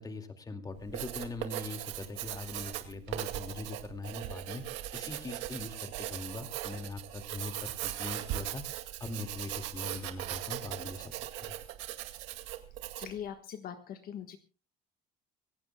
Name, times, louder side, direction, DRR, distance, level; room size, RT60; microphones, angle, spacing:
voice 1, 0.0-4.6 4.9-8.6 9.0-11.1 11.4-11.5, left 3 dB, 20° left, 6 dB, 2.3 m, -41 dB
Writing, 0.8-13.2, right 14 dB, 80° right, 2.2 m, -39 dB
voice 2, 13.0-14.4, left 9 dB, 55° left, 7 dB, 1.4 m, -41 dB
26.5 x 16.0 x 2.3 m, 0.34 s
cardioid pair, 130°, 18 cm